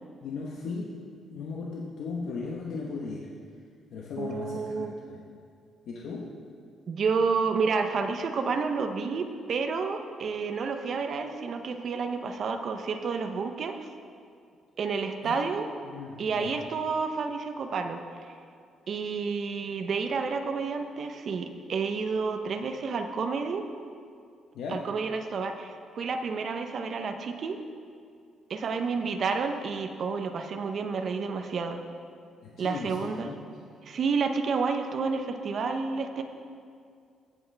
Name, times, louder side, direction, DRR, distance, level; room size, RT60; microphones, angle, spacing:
voice 1, 0.2-1.0 1.3-3.3 3.9-5.2 5.9-6.4 15.2-15.3 15.8-16.5 24.5-24.9 32.4-33.6, left 4 dB, 65° left, -2 dB, 1.0 m, -37 dB
voice 2, 4.2-4.9 6.9-13.9 14.8-15.7 16.2-18.0 18.9-23.7 24.7-27.6 28.5-31.8 32.6-33.3 33.8-36.2, right 5 dB, 40° right, 6 dB, 0.6 m, -30 dB
17.0 x 8.0 x 3.3 m, 2.3 s
cardioid pair, 180°, 0 cm